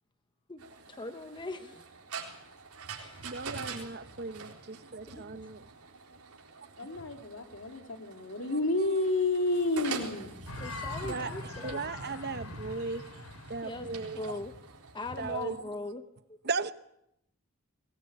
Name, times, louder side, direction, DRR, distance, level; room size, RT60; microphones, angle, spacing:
voice 1, 0.5-1.8 2.9-3.3 5.1-5.4 10.6-11.8 13.6-13.9 14.1-14.5 14.9-16.0 16.3-16.4, left 2 dB, 20° left, 1.0 m, -40 dB
sound 1, 0.6-15.4, right 4 dB, 85° right, 4.0 m, -45 dB
voice 2, 3.2-5.7 8.9-9.0 11.1-13.0 13.5-14.4 15.2-15.6 16.4-16.7, right 4 dB, 50° right, 0.9 m, -37 dB
voice 3, 6.8-10.4, left 2 dB, 60° left, 2.6 m, -30 dB
sound 2, 10.5-15.4, left 2 dB, 90° left, 3.3 m, -43 dB
22.5 x 19.0 x 8.6 m
head